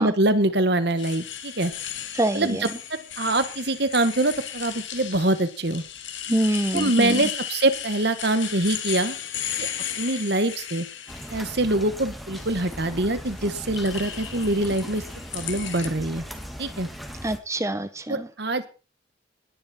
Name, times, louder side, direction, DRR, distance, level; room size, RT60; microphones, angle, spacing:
voice 1, 0.0-1.7 2.3-5.8 6.7-9.1 9.6-9.7 10.0-10.9 11.3-15.0 15.3-16.2 16.6-16.9 18.1-18.7, right 2 dB, 55° right, 12 dB, 1.5 m, -24 dB
sound 1, 1.0-11.6 12.1-12.7 13.3-15.9, left 10 dB, 70° left, 2.1 m, -35 dB
voice 2, 2.2-2.6 6.3-7.2 17.2-18.3, right 1 dB, 15° right, 13 dB, 0.8 m, -25 dB
sound 2, 11.1-17.4, equal, ahead, 1.8 m, -38 dB
19.0 x 11.0 x 4.4 m, 0.35 s
head